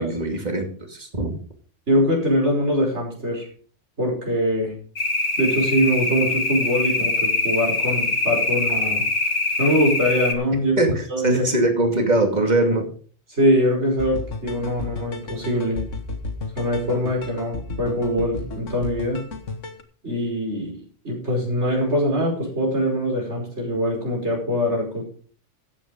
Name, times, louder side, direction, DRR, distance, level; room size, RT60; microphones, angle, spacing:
voice 1, 0.0-1.4 10.8-12.9, right 2 dB, 35° right, 4 dB, 2.5 m, -22 dB
voice 2, 1.9-3.5 4.0-4.7 5.4-9.0 9.6-10.7 11.1-11.4 13.3-15.8 16.6-19.2 20.0-20.8 21.0-25.0, equal, 65° right, -1 dB, 5.9 m, -23 dB
sound 1, 5.0-10.3, left 2 dB, 55° left, 1.9 m, -23 dB
sound 2, 14.0-19.8, left 3 dB, 80° left, 1.8 m, -33 dB
14.0 x 8.4 x 5.1 m, 0.43 s
omnidirectional pair, 1.3 m